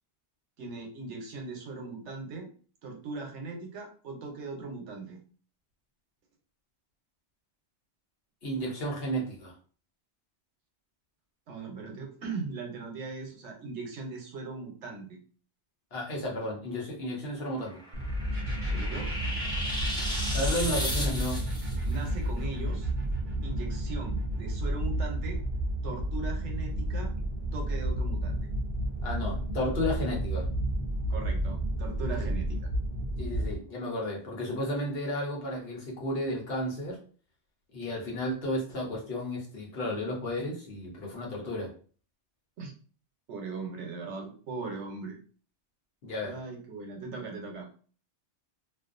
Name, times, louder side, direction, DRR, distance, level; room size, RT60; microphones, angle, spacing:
voice 1, 0.6-2.5 2.8-5.2 11.5-15.2 18.7-19.1 21.8-22.9 23.4-25.4 25.8-27.1 27.5-28.4 31.1-32.6 42.6-42.7 43.3-45.2 46.2-47.7, right 4 dB, 90° right, 2 dB, 1.0 m, -39 dB
voice 2, 8.4-9.5 15.9-17.8 20.3-21.4 29.0-30.5 32.2-32.3 33.2-37.0 37.7-41.7 46.0-46.4, left 1 dB, 60° left, -2 dB, 1.0 m, -33 dB
sound 1, 17.6-21.8, equal, 5° left, 0.4 m, -35 dB
sound 2, 17.9-33.6, right 1 dB, 55° right, 0.4 m, -31 dB
sound 3, 18.3-25.8, right 1 dB, 35° right, 0.8 m, -49 dB
2.5 x 2.3 x 2.4 m, 0.41 s
omnidirectional pair, 1.1 m